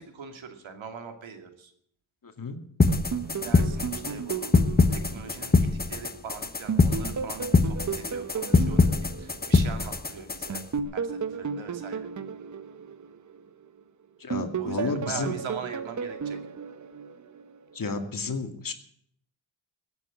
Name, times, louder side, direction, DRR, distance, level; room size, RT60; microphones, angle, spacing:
voice 1, 0.0-1.7 3.4-4.5 4.9-10.6 10.9-12.1 14.6-16.4, right 6 dB, 70° right, 6 dB, 2.6 m, -42 dB
voice 2, 2.2-2.6 14.2-15.3 17.7-18.7, left 4 dB, 45° left, 6 dB, 2.3 m, -31 dB
sound 1, 2.8-10.8, left 3 dB, 20° left, 1.2 m, -24 dB
sound 2, 2.9-6.2 6.7-9.9 10.5-13.8 14.3-17.5, right 6 dB, 40° right, 1.0 m, -34 dB
16.0 x 8.3 x 9.6 m, 0.68 s
cardioid pair, 70°, 48 cm